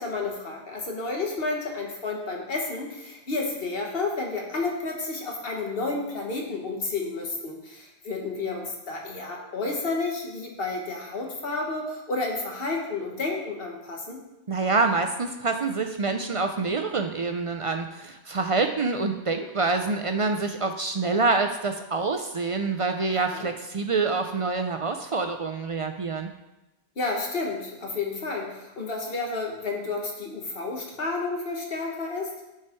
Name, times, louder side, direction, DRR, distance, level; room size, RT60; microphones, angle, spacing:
voice 1, 0.0-14.2 23.1-23.5 27.0-32.3, left 3 dB, 60° left, 0 dB, 1.5 m, -31 dB
voice 2, 14.5-26.3, right 3 dB, 50° right, 5 dB, 0.4 m, -26 dB
9.4 x 4.8 x 4.4 m, 0.98 s
omnidirectional pair, 1.1 m